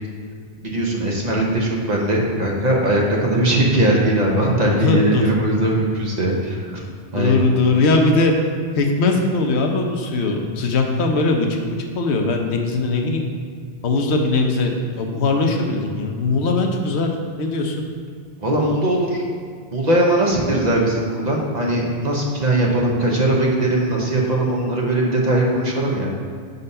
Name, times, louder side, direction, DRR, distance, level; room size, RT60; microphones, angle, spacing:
voice 1, 0.6-6.8 7.1-7.4 18.4-19.2 19.7-26.1, right 1 dB, 45° right, -2 dB, 1.0 m, -20 dB
voice 2, 4.8-5.4 7.2-8.3 8.8-13.3 13.8-17.1 17.4-17.8, left 3 dB, 90° left, 3 dB, 1.0 m, -20 dB
5.4 x 4.1 x 5.4 m, 2.1 s
omnidirectional pair, 1.1 m